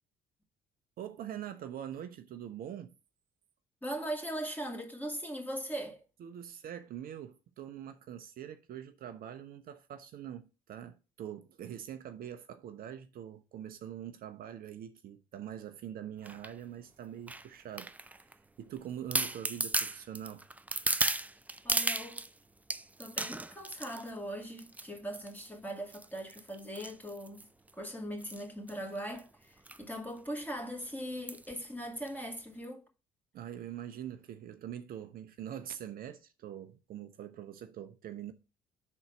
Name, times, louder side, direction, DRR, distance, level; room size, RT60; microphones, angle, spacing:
voice 1, 1.0-2.9 6.2-20.4 29.8-29.9 33.3-38.3, right 10 dB, 55° right, 0.7 m, -44 dB
voice 2, 3.8-6.0 21.6-22.3 23.0-27.5 27.7-32.9, equal, 10° left, 2.2 m, -40 dB
sound 1, 16.2-16.5 17.3-18.3 18.8-18.9 19.1-22.3 22.7-24.1 24.6-24.9 25.1-25.5 25.9-27.7 28.2-28.4 28.7-28.8 29.0-29.2 29.7-29.8 30.2-30.3 31.3-31.5 32.1-32.2, right 2 dB, 10° right, 0.4 m, -34 dB
5.4 x 4.0 x 5.8 m
hypercardioid pair, 55°, 18 cm